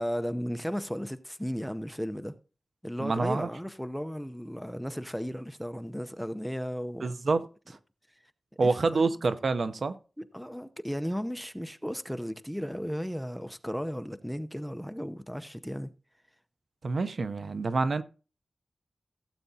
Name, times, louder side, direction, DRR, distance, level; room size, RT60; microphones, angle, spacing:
voice 1, 0.0-2.3 2.8-7.1 8.6-9.0 10.2-15.9, equal, ahead, 0.6 m, -35 dB
voice 2, 3.0-3.5 7.0-7.8 8.6-9.9 16.8-18.0, right 3 dB, 65° right, 0.6 m, -27 dB
16.0 x 8.3 x 2.7 m
wide cardioid pair, 105°, 0 cm